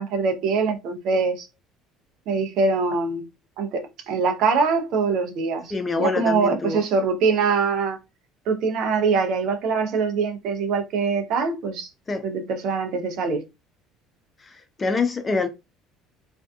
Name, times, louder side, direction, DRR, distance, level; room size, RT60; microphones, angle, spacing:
voice 1, 0.0-1.5 2.3-3.2 3.6-8.0 8.5-11.9 12.2-13.4, right 4 dB, 65° right, 0.7 m, -23 dB
voice 2, 5.7-6.8 12.1-12.3 14.8-15.5, left 4 dB, 30° left, 0.6 m, -25 dB
2.6 x 2.2 x 2.4 m
hypercardioid pair, 70°, 0 cm